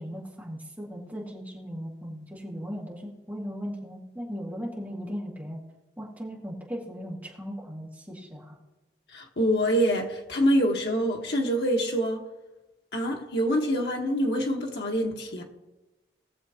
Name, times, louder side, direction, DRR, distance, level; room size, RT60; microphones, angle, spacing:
voice 1, 0.0-5.6 6.0-8.6, equal, 10° right, 2.0 m, -37 dB
voice 2, 9.1-12.2 12.9-15.4, equal, 75° left, 1.4 m, -25 dB
19.5 x 7.1 x 2.9 m
head